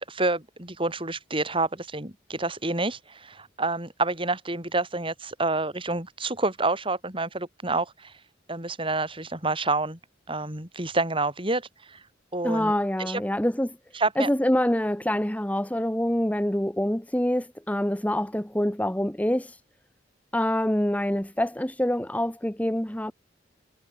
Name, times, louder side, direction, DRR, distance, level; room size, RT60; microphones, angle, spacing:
voice 1, 0.0-8.1 8.5-10.0 10.3-12.0 12.3-12.7 13.0-13.2 13.9-14.3, right 2 dB, 30° right, 6.1 m, -28 dB
voice 2, 12.4-13.8 14.2-19.6 20.3-23.1, left 1 dB, 10° left, 1.1 m, -26 dB
head